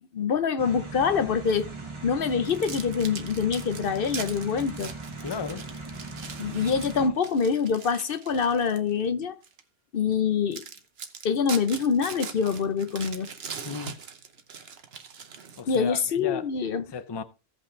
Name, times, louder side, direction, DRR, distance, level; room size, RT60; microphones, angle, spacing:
voice 1, 0.1-1.7 2.0-4.9 6.4-9.4 9.9-10.6 11.2-13.3 15.7-16.8, left 6 dB, 60° left, 0.9 m, -25 dB
sound 1, 0.6-7.1, right 3 dB, 30° right, 1.3 m, -39 dB
sound 2, 2.4-8.9 9.4-9.6 10.1-10.2 10.5-16.0, right 6 dB, 70° right, 1.2 m, -41 dB
voice 2, 5.2-5.7 13.6-14.0 15.6-16.5 16.9-17.2, left 5 dB, 30° left, 0.5 m, -34 dB
16.5 x 5.5 x 3.2 m
omnidirectional pair, 1.1 m